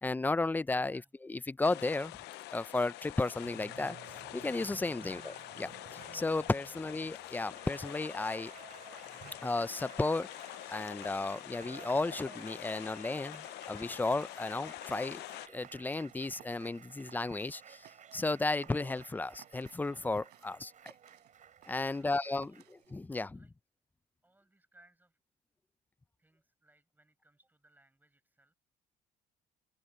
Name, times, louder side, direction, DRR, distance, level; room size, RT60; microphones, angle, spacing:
voice 1, 0.0-2.1 2.5-4.0 4.3-5.7 6.1-8.5 9.4-10.3 10.7-17.9 18.1-20.9 21.7-22.5 22.9-23.4, left 3 dB, 10° left, 0.5 m, -34 dB
sound 1, 1.6-15.5, left 17 dB, 85° left, 0.7 m, -46 dB
Applause, 3.2-22.8, right 8 dB, 50° right, 6.0 m, -55 dB
sound 2, 14.7-23.1, right 18 dB, 85° right, 5.3 m, -62 dB
voice 2, 21.8-22.6 23.3-23.5 24.2-25.2 26.2-28.5, right 1 dB, 10° right, 6.2 m, -67 dB
open air
cardioid pair, 110°, 17 cm